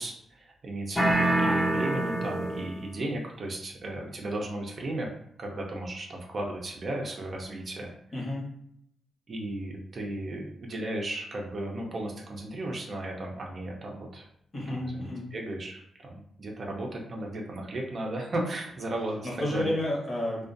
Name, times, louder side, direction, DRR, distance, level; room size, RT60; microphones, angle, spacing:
voice 1, 0.0-5.1 5.4-7.9 9.3-14.3 14.7-16.1 16.4-19.7, right 1 dB, 45° right, 0 dB, 0.5 m, -35 dB
sound 1, 1.0-2.9, right 1 dB, 5° left, 0.6 m, -26 dB
voice 2, 8.1-8.5 14.5-15.2 19.2-20.4, left 1 dB, 35° left, -3 dB, 1.0 m, -31 dB
2.4 x 2.2 x 2.5 m, 0.72 s
cardioid pair, 105°, 0 cm